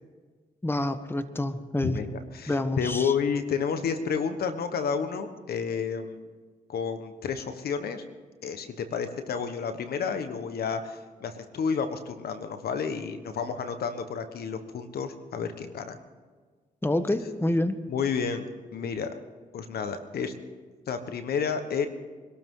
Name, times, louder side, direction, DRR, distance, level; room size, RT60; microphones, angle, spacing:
voice 1, 0.6-2.0 2.5-3.1 16.8-17.8, left 1 dB, 15° left, 10 dB, 1.3 m, -27 dB
voice 2, 1.8-6.3 6.7-8.0 8.4-16.0 17.9-18.4 18.7-19.1 19.5-20.3 20.9-21.9, left 6 dB, 80° left, 9 dB, 1.3 m, -30 dB
24.5 x 13.0 x 3.8 m, 1.5 s
supercardioid pair, 55°, 16 cm